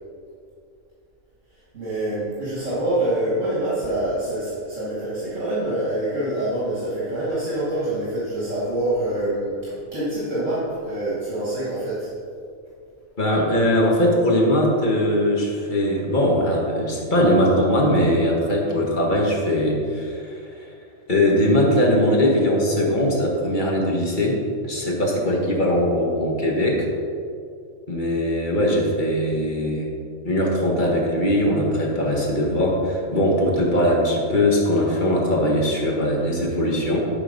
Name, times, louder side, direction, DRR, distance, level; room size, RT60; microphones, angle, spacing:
voice 1, 1.7-12.1, right 1 dB, 65° right, -8 dB, 2.4 m, -25 dB
voice 2, 13.2-20.7 21.1-24.4 24.6-26.9 27.9-29.9 30.2-37.0, equal, 35° left, -2 dB, 1.7 m, -20 dB
12.0 x 4.4 x 5.3 m, 2.4 s
omnidirectional pair, 1.4 m